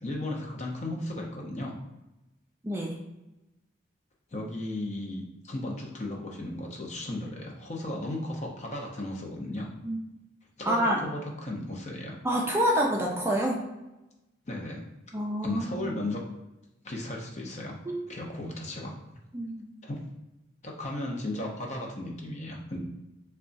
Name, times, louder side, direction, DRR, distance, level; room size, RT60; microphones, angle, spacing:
voice 1, 0.0-1.8 4.3-9.7 10.6-12.2 14.5-14.9 15.4-16.2 16.8-17.8 18.1-18.9 19.8-20.0 20.6-22.8, left 1 dB, 35° left, 0 dB, 0.7 m, -35 dB
voice 2, 10.7-11.0 12.2-13.6 15.1-16.1 17.9-18.0 19.3-19.7, equal, 15° right, -1 dB, 0.4 m, -27 dB
3.6 x 2.2 x 3.9 m, 0.97 s
head